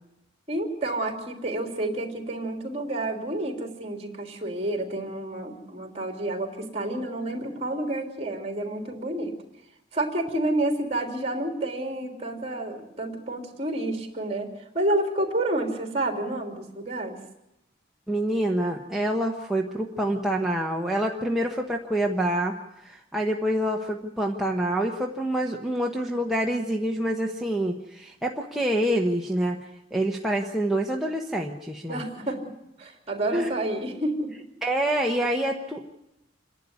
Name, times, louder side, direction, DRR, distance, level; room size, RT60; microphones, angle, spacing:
voice 1, 0.5-9.4 9.9-14.5 14.7-17.2 31.9-32.4 32.8-34.3, right 1 dB, 30° right, 4 dB, 3.1 m, -29 dB
voice 2, 18.1-22.6 22.8-29.6 29.9-32.0 33.3-33.5 34.6-35.9, right 1 dB, ahead, -1 dB, 1.1 m, -26 dB
27.0 x 11.5 x 9.6 m, 0.88 s
head